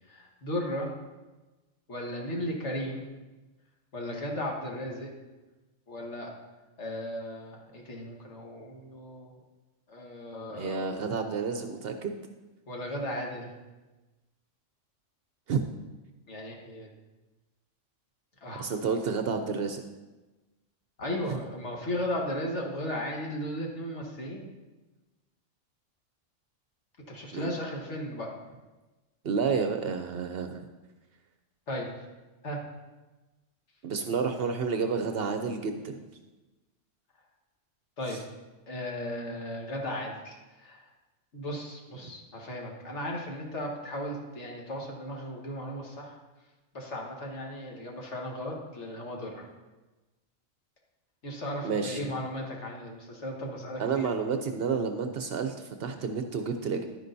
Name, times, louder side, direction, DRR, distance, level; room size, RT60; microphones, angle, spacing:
voice 1, 0.1-0.9 1.9-3.0 3.9-5.1 5.9-6.3 6.8-9.3 9.9-10.9 12.7-13.5 16.3-16.9 18.4-18.7 21.0-24.4 27.1-28.3 31.7-31.9 32.4-32.6 38.0-38.2 38.7-40.8 41.3-46.2 46.7-49.5 51.2-54.1, equal, 65° left, 0 dB, 1.7 m, -36 dB
voice 2, 10.5-12.2 15.5-15.6 18.6-19.8 21.3-21.4 27.3-27.6 29.2-30.6 33.8-36.0 38.1-38.2 51.6-52.1 53.8-56.8, right 5 dB, 60° right, 6 dB, 0.7 m, -30 dB
11.0 x 9.6 x 2.7 m, 1.2 s
omnidirectional pair, 1.3 m